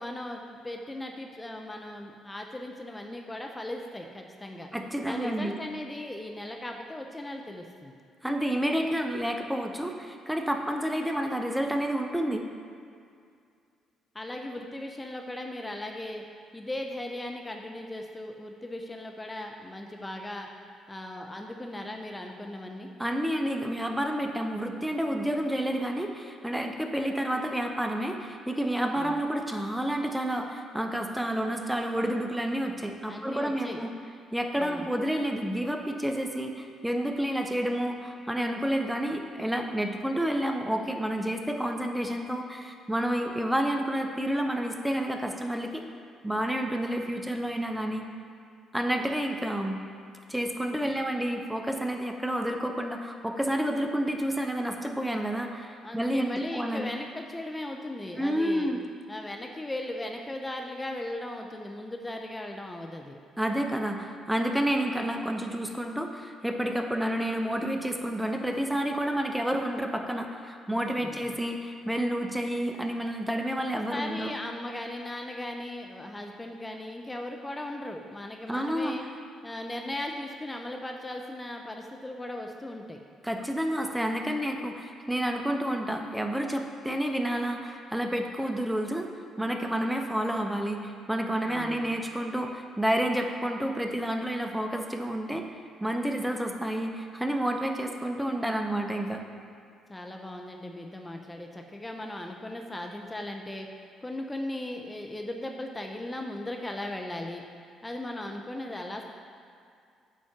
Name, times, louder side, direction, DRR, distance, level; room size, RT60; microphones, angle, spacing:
voice 1, 0.0-4.7 5.1-8.0 14.1-16.2 16.5-20.5 20.9-22.9 28.9-29.2 33.1-33.8 34.6-34.9 50.8-50.9 55.8-58.7 59.1-63.2 71.0-71.3 73.5-79.0 79.4-83.0 91.4-92.0 99.9-107.4 107.8-109.0, left 1 dB, 20° left, 2 dB, 0.8 m, -38 dB
voice 2, 4.7-5.6 8.2-12.5 23.0-33.9 34.3-45.8 46.2-48.1 48.7-49.8 50.3-56.9 58.2-58.8 63.4-74.3 78.5-78.9 83.2-89.1 89.4-95.5 95.8-99.2, right 1 dB, 5° right, 4 dB, 0.9 m, -29 dB
9.2 x 4.3 x 6.0 m, 2.3 s
hypercardioid pair, 50°, 0 cm